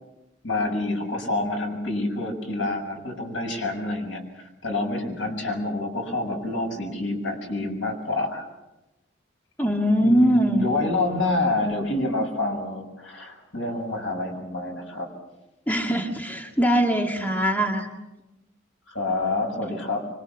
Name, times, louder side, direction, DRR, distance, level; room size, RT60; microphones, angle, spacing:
voice 1, 0.4-8.5 10.0-15.1 18.9-20.1, left 2 dB, 75° left, 3 dB, 7.1 m, -28 dB
voice 2, 9.6-10.7 15.7-17.9, equal, 10° left, 2 dB, 2.1 m, -21 dB
26.0 x 25.0 x 7.3 m, 0.99 s
head